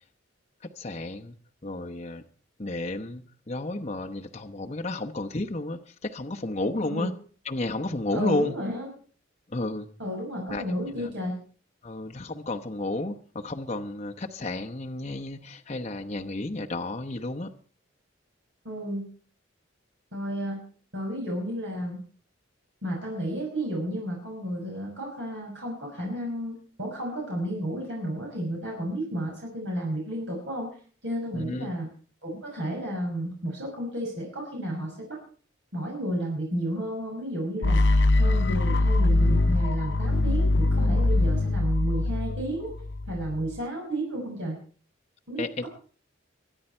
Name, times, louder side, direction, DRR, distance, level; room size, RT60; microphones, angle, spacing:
voice 1, 0.6-1.4 1.6-2.2 2.6-7.1 7.4-8.6 9.5-9.9 10.5-11.1 11.8-17.5 31.3-31.7 45.4-45.6, left 2 dB, 35° left, 2 dB, 0.9 m, -32 dB
voice 2, 8.1-8.9 10.0-11.4 18.6-19.1 20.1-20.6 20.9-22.0 22.8-30.7 31.0-31.9 32.2-35.2 35.7-37.8 38.1-42.7 43.1-44.6 45.3-45.7, right 1 dB, 65° right, -1 dB, 6.1 m, -32 dB
sound 1, 37.6-43.6, left 2 dB, 65° left, 0.7 m, -23 dB
23.5 x 10.0 x 4.4 m, 0.43 s
head